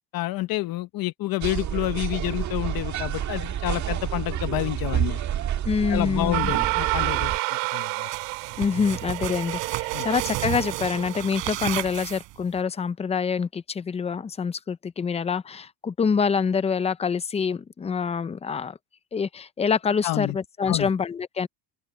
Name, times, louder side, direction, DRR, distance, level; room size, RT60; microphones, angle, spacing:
voice 1, 0.1-5.2 5.9-8.1 9.9-10.1 20.0-20.4 20.7-20.9, left 17 dB, 45° left, 0.9 m, -29 dB
sound 1, 1.4-7.4, right 10 dB, 35° right, 1.6 m, -29 dB
voice 2, 5.6-6.5 8.6-18.8 19.1-21.5, left 6 dB, 15° left, 0.5 m, -26 dB
sound 2, 6.3-11.4, right 30 dB, 80° right, 3.3 m, -29 dB
sound 3, 8.1-12.6, right 19 dB, 60° right, 6.2 m, -33 dB
open air
cardioid pair, 135°, 49 cm